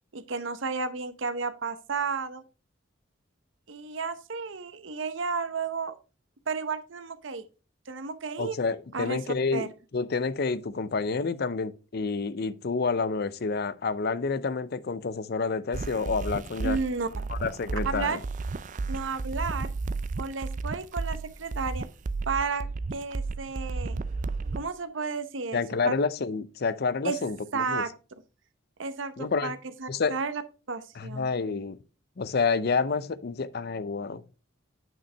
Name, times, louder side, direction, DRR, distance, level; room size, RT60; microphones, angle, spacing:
voice 1, 0.1-2.4 3.7-6.0 6.5-7.5 7.9-8.6 8.9-9.2 9.5-9.7 16.6-17.3 17.9-18.2 18.9-19.7 20.2-21.9 22.3-24.0 24.5-25.9 27.0-27.2 27.5-27.9 28.8-30.4 30.7-31.3, right 4 dB, 75° right, 0.8 m, -32 dB
voice 2, 8.4-16.8 17.3-18.2 25.5-27.8 29.2-29.6 29.9-30.2 31.0-31.8 32.2-34.2, left 4 dB, 55° left, 0.5 m, -29 dB
sound 1, 15.7-24.7, right 3 dB, 40° right, 0.4 m, -33 dB
9.0 x 5.6 x 3.3 m
head